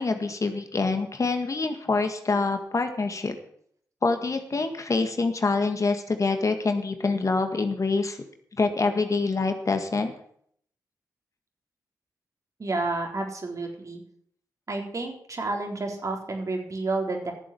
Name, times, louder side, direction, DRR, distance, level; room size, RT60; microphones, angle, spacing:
voice 1, 0.0-3.4 4.0-8.2 8.6-10.1, left 3 dB, 50° left, 6 dB, 1.8 m, -26 dB
voice 2, 12.6-14.0 14.7-17.3, right 3 dB, 50° right, 1 dB, 4.1 m, -30 dB
11.5 x 7.3 x 8.5 m, 0.66 s
supercardioid pair, 40°, 7 cm